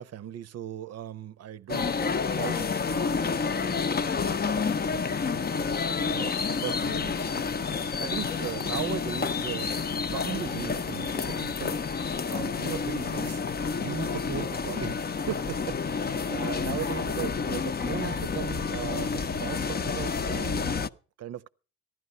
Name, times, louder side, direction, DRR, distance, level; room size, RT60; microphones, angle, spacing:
voice 1, 0.0-11.8 12.3-13.4 13.7-20.8 21.2-21.5, right 10 dB, 55° right, 0.7 m, -38 dB
sound 1, 1.7-20.9, left 5 dB, 30° left, 0.7 m, -29 dB
15.5 x 11.0 x 5.5 m
cardioid pair, 90°, 30 cm